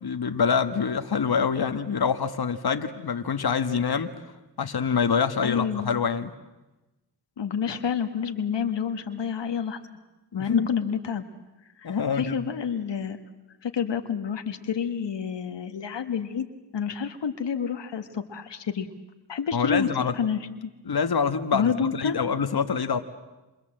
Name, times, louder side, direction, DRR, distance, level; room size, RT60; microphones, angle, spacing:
voice 1, 0.0-4.1 4.6-6.3 10.3-10.7 11.8-12.4 19.5-20.1 20.9-23.0, left 6 dB, 60° left, 8 dB, 1.4 m, -25 dB
voice 2, 5.4-5.9 7.4-9.8 10.3-11.2 11.8-13.2 13.6-16.5 16.7-18.9 19.3-20.7 21.5-22.2, left 7 dB, 85° left, 7 dB, 1.6 m, -29 dB
29.5 x 25.5 x 7.7 m, 1.1 s
cardioid pair, 45°, 42 cm